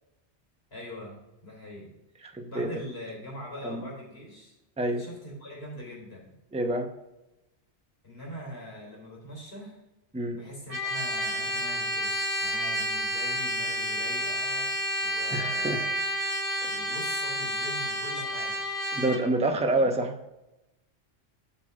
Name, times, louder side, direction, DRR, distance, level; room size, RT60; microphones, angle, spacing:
voice 1, 0.7-1.9 2.2-4.5 4.9-6.3 8.0-9.8 10.3-12.1 12.4-15.9 16.6-18.6 19.5-19.9, left 1 dB, 65° left, -3 dB, 3.8 m, -43 dB
voice 2, 2.2-2.7 3.6-3.8 4.8-5.1 6.5-6.9 10.1-10.4 15.3-15.9 16.6-16.7 18.9-20.1, right 2 dB, 5° right, 3 dB, 0.7 m, -27 dB
Trumpet, 10.7-19.2, equal, 35° right, 1.3 m, -30 dB
8.5 x 5.5 x 4.8 m, 0.96 s
omnidirectional pair, 1.1 m